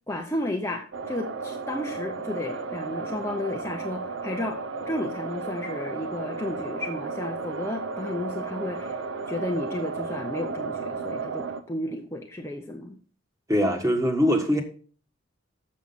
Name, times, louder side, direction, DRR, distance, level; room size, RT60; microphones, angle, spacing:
voice 1, 0.1-4.6 4.9-9.0 9.3-12.9, left 1 dB, 15° left, 1 dB, 0.8 m, -33 dB
sound 1, 0.9-11.6, right 4 dB, 65° right, 0.7 m, -34 dB
voice 2, 13.5-14.6, equal, 15° right, 3 dB, 1.5 m, -22 dB
7.4 x 6.4 x 5.5 m, 0.42 s
head